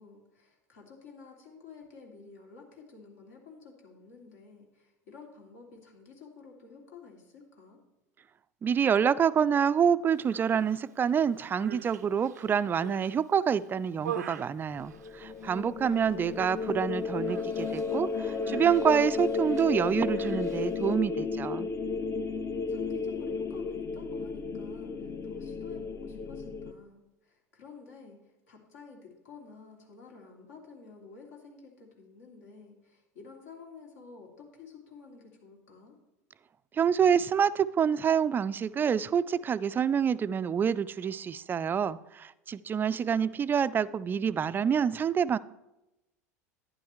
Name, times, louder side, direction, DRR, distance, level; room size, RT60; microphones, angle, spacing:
voice 1, 0.0-7.8 16.2-16.6 22.7-36.0 42.7-43.6, left 5 dB, 70° left, 2.7 m, -51 dB
voice 2, 8.6-21.7 36.7-45.4, right 7 dB, 25° right, 0.4 m, -27 dB
Human voice, 10.2-10.8 11.4-13.2 13.6-15.6 15.9-16.3 16.6-16.8 17.3-20.9, right 9 dB, 80° right, 0.5 m, -44 dB
sound 1, 14.8-26.7, left 5 dB, 25° left, 0.7 m, -33 dB
11.5 x 10.0 x 3.1 m
hypercardioid pair, 85°, 9 cm